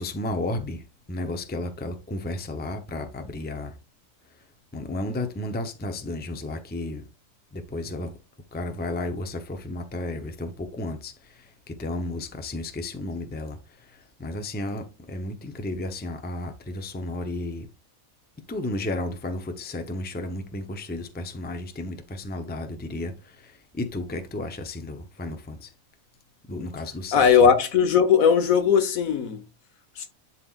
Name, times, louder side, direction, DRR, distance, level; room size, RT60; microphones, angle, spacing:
voice 1, 0.0-3.8 4.7-7.1 7.5-8.1 8.5-17.7 18.5-25.7 26.5-27.5, left 1 dB, 10° left, 0.5 m, -33 dB
voice 2, 27.1-29.4 30.0-30.1, left 7 dB, 75° left, 1.4 m, -19 dB
11.0 x 4.3 x 2.4 m
omnidirectional pair, 1.4 m